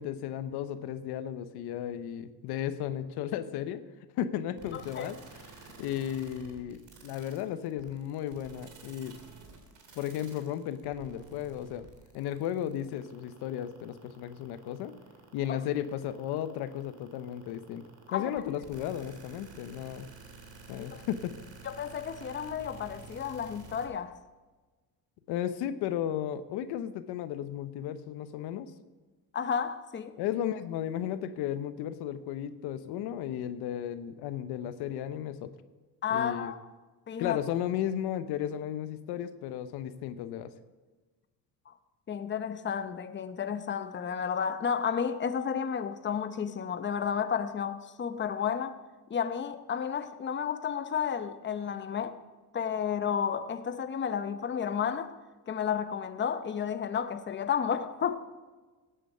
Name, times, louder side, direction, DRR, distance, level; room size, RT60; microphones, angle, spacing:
voice 1, 0.0-3.8 4.2-5.2 5.6-9.2 9.9-11.9 12.1-14.9 15.3-17.8 18.1-20.1 20.7-21.4 25.3-28.7 30.2-35.5 36.1-36.5 37.2-40.5, left 10 dB, 85° left, 0.9 m, -34 dB
sound 1, 4.6-23.9, right 4 dB, 50° right, 2.9 m, -51 dB
voice 2, 4.7-5.1 15.5-15.6 18.1-18.3 20.8-21.0 21.6-24.1 29.3-30.1 36.0-36.6 37.1-37.4 41.7-41.8 42.1-48.8 49.1-52.2 52.5-55.2 55.5-58.2, left 7 dB, 30° left, 0.9 m, -32 dB
17.0 x 9.1 x 5.6 m
cardioid pair, 110°, 38 cm